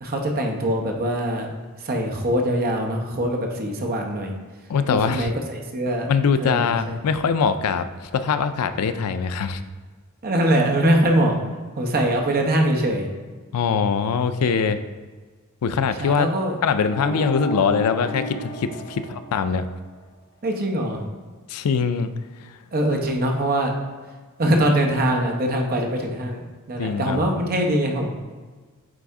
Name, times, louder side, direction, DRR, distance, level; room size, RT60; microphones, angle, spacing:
voice 1, 0.0-1.5 1.8-4.3 4.9-6.1 6.4-7.0 10.2-11.3 11.7-13.1 16.0-16.6 20.4-21.0 22.7-23.7 24.4-28.1, right 1 dB, 45° right, 2 dB, 0.9 m, -22 dB
voice 2, 4.7-5.3 6.1-9.6 13.5-14.8 15.6-16.3 16.6-19.7 21.5-22.1 22.4-22.5 26.8-27.2, left 6 dB, 80° left, 10 dB, 0.4 m, -22 dB
sound 1, 16.9-19.9, equal, 35° left, 1.6 m, -31 dB
8.7 x 3.4 x 3.7 m, 1.4 s
head